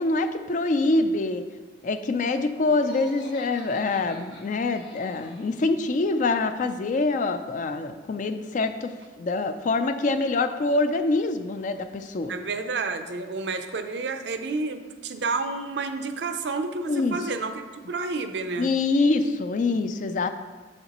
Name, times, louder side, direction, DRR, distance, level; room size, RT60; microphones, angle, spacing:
voice 1, 0.0-1.4 1.8-12.3 16.9-17.2 18.6-20.3, left 3 dB, 45° left, 9 dB, 0.4 m, -25 dB
Laughter, 2.7-5.6, left 1 dB, 85° left, 1.1 m, -46 dB
voice 2, 12.3-18.7, right 3 dB, 70° right, 7 dB, 0.5 m, -30 dB
6.6 x 6.5 x 3.0 m, 1.3 s
head